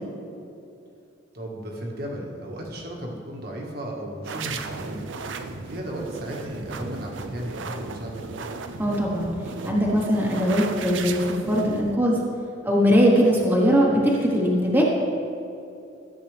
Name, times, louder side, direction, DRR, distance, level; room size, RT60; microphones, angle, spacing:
voice 1, 1.3-5.1 5.6-8.2, right 1 dB, 55° right, -1 dB, 1.7 m, -35 dB
sound 1, 4.2-12.0, right 4 dB, 80° right, 0.6 m, -35 dB
voice 2, 8.8-9.3 9.6-12.2 12.6-14.8, equal, 10° right, -4 dB, 1.3 m, -20 dB
14.0 x 7.8 x 3.4 m, 2.6 s
head